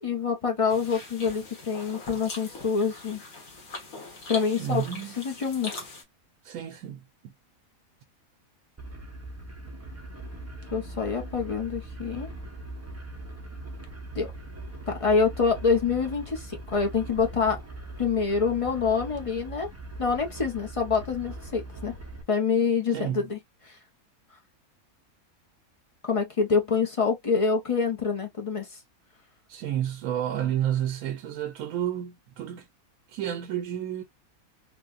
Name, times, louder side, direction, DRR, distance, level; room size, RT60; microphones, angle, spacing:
voice 1, 0.0-3.2 4.3-4.8 5.2-5.7 10.7-12.3 14.1-14.3 14.9-17.6 18.0-19.7 20.0-21.9 22.3-23.4 23.7-23.8 26.0-28.7, left 5 dB, 40° left, 0.4 m, -26 dB
sound 1, 0.7-6.0, left 3 dB, 80° left, 1.7 m, -41 dB
voice 2, 4.6-5.2 6.4-7.3 22.9-23.3 29.5-32.7 33.1-34.0, right 11 dB, 75° right, 1.0 m, -31 dB
sound 2, 8.8-22.2, right 2 dB, 25° right, 0.3 m, -41 dB
3.6 x 2.2 x 2.3 m
omnidirectional pair, 1.5 m